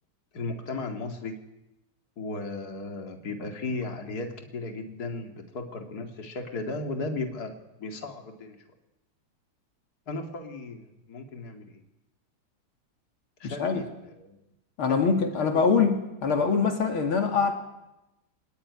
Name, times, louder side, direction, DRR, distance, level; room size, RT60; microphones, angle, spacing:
voice 1, 0.3-1.4 2.2-8.6 10.1-11.8 13.4-14.4 14.9-15.7, left 3 dB, 45° left, 4 dB, 2.8 m, -36 dB
voice 2, 13.4-13.8 14.8-17.5, left 5 dB, 75° left, 4 dB, 3.3 m, -24 dB
25.0 x 19.5 x 9.7 m, 0.95 s
omnidirectional pair, 2.3 m